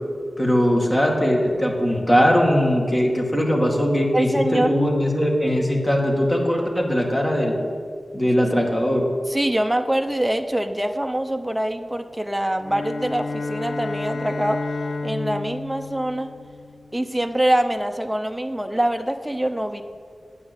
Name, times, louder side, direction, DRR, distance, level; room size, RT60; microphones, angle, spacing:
voice 1, 0.4-7.5 8.1-9.1, equal, 20° left, 0 dB, 2.1 m, -20 dB
voice 2, 4.1-4.7 9.3-14.7 15.0-16.3 16.9-19.8, right 1 dB, 5° right, 6 dB, 0.7 m, -24 dB
Bowed string instrument, 12.6-17.0, left 3 dB, 75° left, 1.5 m, -31 dB
9.4 x 7.8 x 8.2 m, 2.1 s
wide cardioid pair, 75°, 0 cm